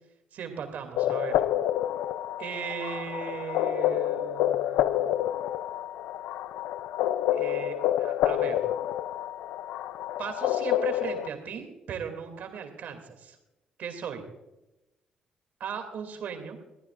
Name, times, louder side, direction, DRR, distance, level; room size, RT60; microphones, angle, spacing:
voice 1, 0.3-1.4 2.4-5.1 7.3-8.6 10.2-13.4 13.8-14.2 15.6-16.6, right 7 dB, 70° right, 6 dB, 2.6 m, -37 dB
sound 1, 1.0-11.3, left 12 dB, 80° left, 0.5 m, -28 dB
21.5 x 15.0 x 2.5 m, 0.98 s
hypercardioid pair, 50°, 3 cm